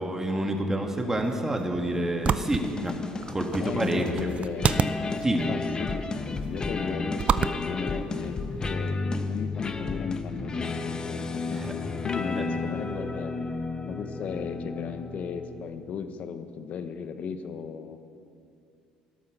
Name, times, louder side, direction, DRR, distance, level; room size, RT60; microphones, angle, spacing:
voice 1, 0.0-3.0 3.3-4.3 5.2-5.4 11.5-11.7 12.4-12.5, right 1 dB, 15° right, 2 dB, 2.3 m, -28 dB
sound 1, 1.1-8.7, right 7 dB, 45° right, 0.5 m, -32 dB
sound 2, 2.3-15.8, left 3 dB, 30° left, 1.2 m, -33 dB
voice 2, 3.6-4.7 5.5-8.4 8.7-11.6 12.0-13.5 13.8-18.0, left 6 dB, 60° left, 9 dB, 1.1 m, -36 dB
16.0 x 12.0 x 6.8 m, 2.5 s
supercardioid pair, 80°, 3 cm